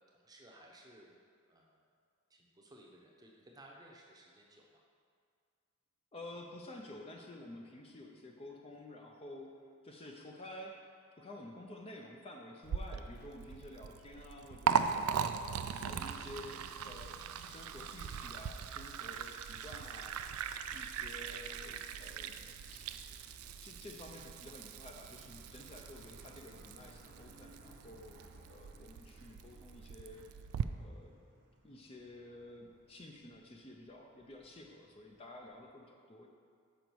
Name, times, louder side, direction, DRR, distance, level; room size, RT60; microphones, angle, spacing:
voice 1, 0.1-1.1 1.5-1.9 2.3-4.8, right 1 dB, 15° right, -1 dB, 0.7 m, -58 dB
voice 2, 6.1-10.8 11.2-15.0 15.3-20.2 20.7-22.4 22.7-22.9 23.6-30.3 30.8-31.2 31.6-36.3, left 1 dB, 25° left, 1 dB, 0.5 m, -51 dB
Liquid, 12.6-30.6, right 7 dB, 75° right, 0.3 m, -40 dB
Truck, 19.4-35.7, right 1 dB, 50° right, 0.8 m, -62 dB
6.9 x 5.1 x 4.6 m, 2.2 s
head